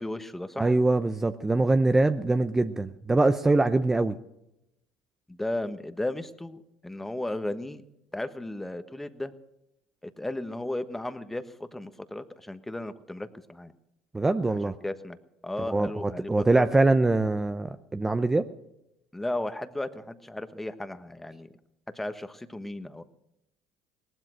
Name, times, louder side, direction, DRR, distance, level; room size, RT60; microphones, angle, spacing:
voice 1, 0.0-0.7 5.3-7.8 8.1-9.3 10.0-13.7 14.1-15.2 15.4-16.7 19.1-21.5 21.9-23.0, left 1 dB, 10° left, 11 dB, 1.3 m, -35 dB
voice 2, 0.6-4.2 14.1-14.8 15.7-18.5, right 2 dB, 15° right, 10 dB, 0.7 m, -23 dB
18.5 x 12.5 x 6.3 m, 0.86 s
hypercardioid pair, 70°, 3 cm